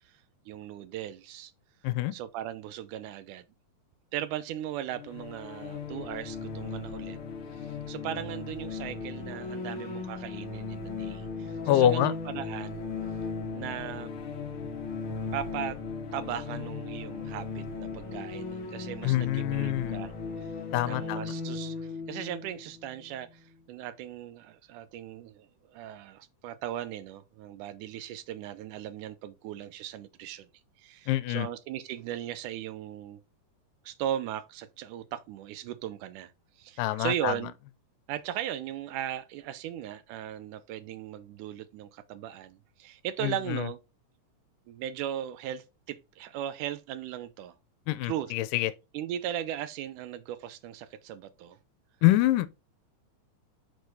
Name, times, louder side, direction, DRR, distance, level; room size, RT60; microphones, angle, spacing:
voice 1, 0.5-1.5 2.1-3.5 4.1-7.2 7.5-12.9 13.5-14.1 15.3-15.8 16.1-20.1 20.4-20.5 20.8-30.5 30.8-33.2 33.9-36.3 36.6-37.5 38.1-43.8 44.7-47.5 48.0-48.3 48.9-51.6, right 11 dB, 80° right, 2.0 m, -38 dB
sound 1, 4.9-23.5, left 4 dB, 60° left, 1.5 m, -37 dB
voice 2, 11.7-12.1 19.0-20.0 20.7-21.3 31.1-31.5 36.8-37.3 43.2-43.6 47.9-48.7 52.0-52.5, left 14 dB, 85° left, 2.2 m, -25 dB
6.5 x 6.1 x 2.7 m
omnidirectional pair, 3.8 m